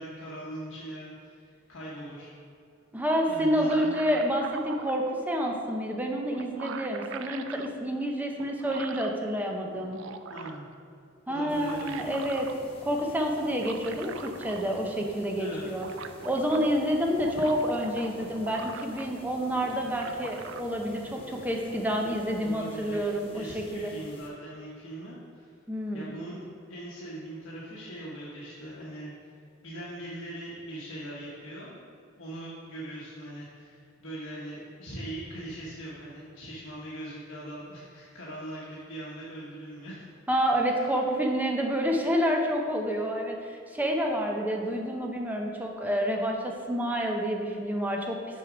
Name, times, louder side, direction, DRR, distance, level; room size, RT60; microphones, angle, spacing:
voice 1, 0.0-2.3 3.3-3.9 10.3-10.7 11.3-12.1 15.4-15.7 22.4-25.5 25.9-29.1 29.6-31.8 32.1-40.1 40.7-40.9, right 1 dB, 80° left, -7 dB, 1.1 m, -41 dB
voice 2, 2.9-10.0 11.3-12.5 12.8-15.9 16.2-23.9 25.7-26.1 40.3-48.2, equal, 10° right, 1 dB, 0.6 m, -28 dB
sound 1, 3.3-5.0 6.0-6.1 6.3-7.7 8.4-9.2 9.7-10.7 11.4-12.6 13.5-14.9 15.2-15.3 15.5-16.7 17.1-19.3 19.6-20.6, right 6 dB, 65° right, 0.4 m, -43 dB
sound 2, 11.5-24.3, left 1 dB, 25° left, 0.9 m, -48 dB
6.5 x 4.7 x 4.9 m, 2.4 s
head